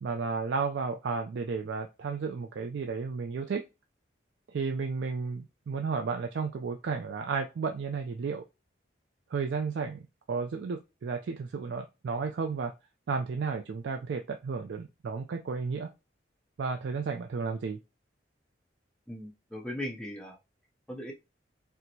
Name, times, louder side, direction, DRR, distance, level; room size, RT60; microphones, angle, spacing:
voice 1, 0.0-3.6 4.5-8.4 9.3-12.7 13.1-15.9 16.6-17.8, right 5 dB, 70° right, 5 dB, 0.3 m, -33 dB
voice 2, 19.1-20.4 20.9-21.1, left 1 dB, 5° left, -1 dB, 0.5 m, -38 dB
4.3 x 2.0 x 2.6 m, 0.26 s
head